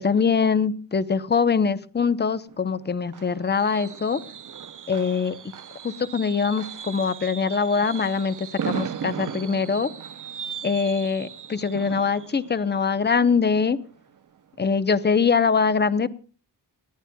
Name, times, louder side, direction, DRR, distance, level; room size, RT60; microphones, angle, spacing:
voice 1, 0.0-4.2 4.9-5.4 5.8-9.9 10.6-13.8 14.6-16.1, left 5 dB, 25° left, 13 dB, 0.7 m, -23 dB
Fireworks, 2.5-14.2 14.5-14.8 15.1-15.2, right 8 dB, 45° right, 0.7 m, -37 dB
29.0 x 11.0 x 2.2 m, 0.37 s
wide cardioid pair, 175°, 43 cm